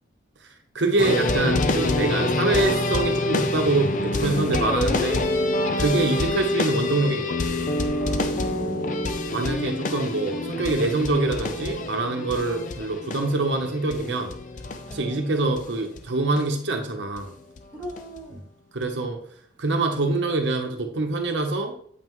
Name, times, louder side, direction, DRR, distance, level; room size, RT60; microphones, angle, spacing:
voice 1, 0.7-5.3 5.8-7.4 9.3-14.3 14.9-17.3 18.7-19.2 19.6-21.7, right 2 dB, 75° right, 4 dB, 1.0 m, -25 dB
sound 1, 1.0-15.6 16.0-16.1 16.4-16.5 17.2-17.3 17.6-18.2 18.8-18.9, left 2 dB, 45° left, 0.6 m, -26 dB
voice 2, 8.2-9.3 14.9-15.3 17.7-18.5, equal, 10° right, -3 dB, 1.6 m, -40 dB
8.2 x 5.6 x 3.1 m, 0.63 s
head